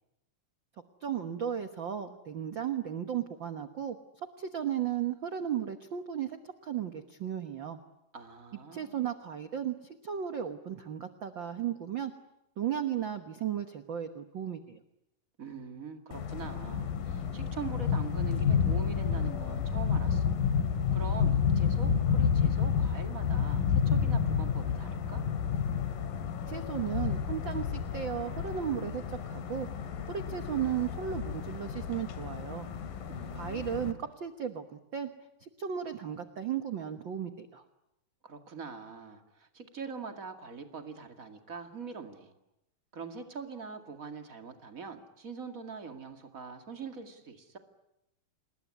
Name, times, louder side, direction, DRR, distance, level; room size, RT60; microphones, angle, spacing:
voice 1, 1.0-4.0 4.4-7.8 8.7-12.1 12.6-14.8 26.5-29.7 30.1-32.7 33.3-35.1 35.4-37.6, right 9 dB, 70° right, 8 dB, 1.1 m, -35 dB
voice 2, 8.1-9.0 15.4-20.4 20.9-25.2 33.1-34.0 38.2-42.3 42.9-47.6, right 5 dB, 30° right, 5 dB, 2.0 m, -43 dB
sound 1, 16.1-33.9, left 7 dB, 80° left, 3.6 m, -30 dB
28.0 x 20.5 x 9.7 m, 0.89 s
omnidirectional pair, 4.0 m